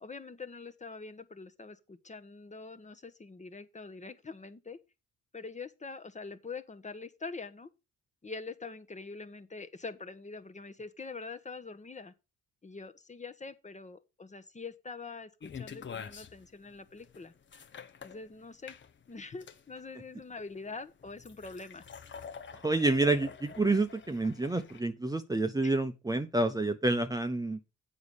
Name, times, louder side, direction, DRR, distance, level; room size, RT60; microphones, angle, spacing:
voice 1, 0.0-4.8 5.3-7.7 8.2-12.1 12.6-17.3 18.0-18.8 19.1-21.8 25.6-25.7, left 4 dB, 25° left, 1.2 m, -44 dB
sound 1, 15.4-24.8, left 7 dB, 40° left, 1.0 m, -47 dB
voice 2, 22.6-27.6, right 2 dB, 10° right, 0.8 m, -28 dB
8.0 x 5.5 x 6.5 m
cardioid pair, 90°, 30 cm